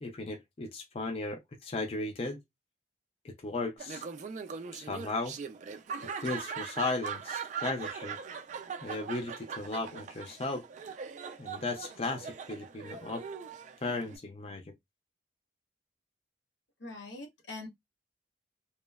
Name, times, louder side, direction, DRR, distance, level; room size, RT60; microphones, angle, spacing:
voice 1, 0.0-2.4 3.2-4.0 4.7-5.3 6.2-8.2 8.8-10.6 11.4-13.2 13.8-14.6, left 3 dB, 35° left, 0.4 m, -36 dB
Laughter, 3.8-14.2, right 6 dB, 40° right, 0.3 m, -41 dB
voice 2, 16.8-17.7, left 2 dB, 90° left, 0.9 m, -43 dB
2.9 x 2.0 x 2.3 m
head